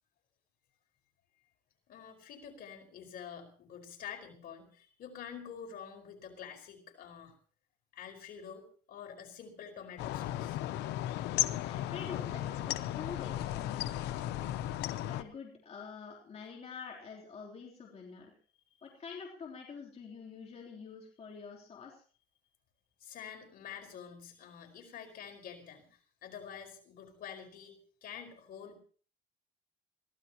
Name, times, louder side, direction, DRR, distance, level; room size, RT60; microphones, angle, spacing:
voice 1, 1.9-7.3 7.9-10.6 16.4-16.5 18.7-18.9 23.0-27.7 28.0-28.8, left 8 dB, 60° left, 3 dB, 5.1 m, -47 dB
sound 1, 10.0-15.2, left 13 dB, 90° left, 0.9 m, -35 dB
voice 2, 11.7-14.6 15.0-18.3 18.8-22.0, left 5 dB, 40° left, -1 dB, 3.7 m, -47 dB
23.5 x 16.5 x 3.0 m, 0.42 s
cardioid pair, 110°, 17 cm